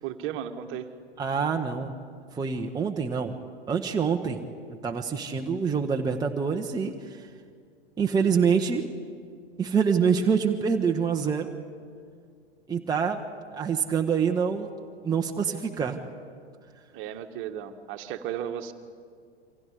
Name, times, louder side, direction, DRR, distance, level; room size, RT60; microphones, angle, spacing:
voice 1, 0.0-0.9 16.9-18.7, right 10 dB, 35° right, 8 dB, 1.6 m, -34 dB
voice 2, 1.2-1.9 2.3-3.3 3.7-4.4 4.8-7.3 8.0-8.9 9.6-11.5 12.7-13.2 13.5-14.7 15.0-16.0, right 6 dB, 10° right, 2 dB, 1.1 m, -26 dB
28.5 x 25.0 x 5.0 m, 2.1 s
figure-of-eight pair, 95°, 33 cm